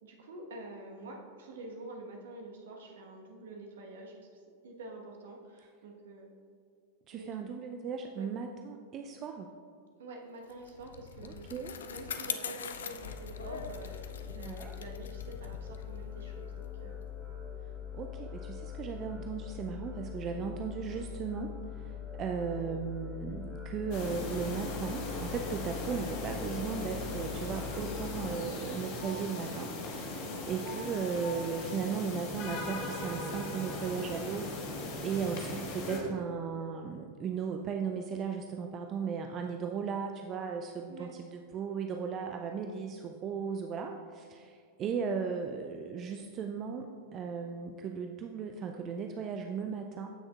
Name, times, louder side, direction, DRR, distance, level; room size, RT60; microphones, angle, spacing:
voice 1, 0.0-6.3 7.1-7.3 8.1-8.3 10.0-11.5 11.9-17.0 30.3-30.5 34.9-35.3 40.9-41.1, right 2 dB, 60° right, 1 dB, 1.2 m, -47 dB
voice 2, 7.1-9.5 11.2-11.7 14.4-14.7 17.9-21.6 21.9-50.1, right 6 dB, 30° right, 4 dB, 0.4 m, -36 dB
Bicycle, 10.5-17.2, left 7 dB, 65° left, 0.4 m, -43 dB
sound 1, 13.0-28.3, left 8 dB, 20° left, 1.7 m, -43 dB
sound 2, 23.9-36.0, left 2 dB, 45° left, 1.4 m, -39 dB
15.0 x 6.3 x 2.4 m, 2.2 s
figure-of-eight pair, 90°, 0 cm